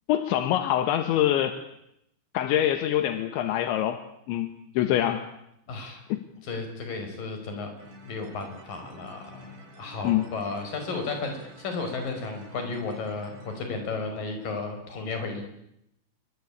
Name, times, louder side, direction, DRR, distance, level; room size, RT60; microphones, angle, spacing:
voice 1, 0.1-1.6 2.3-5.3 6.1-6.2 10.0-10.3, left 12 dB, 80° left, 9 dB, 3.7 m, -25 dB
voice 2, 5.7-6.0 6.4-7.7 8.0-15.4, left 3 dB, 50° left, 5 dB, 7.0 m, -34 dB
sound 1, 7.8-13.6, equal, 70° right, 7.9 m, -49 dB
27.5 x 24.0 x 8.7 m, 0.79 s
omnidirectional pair, 5.3 m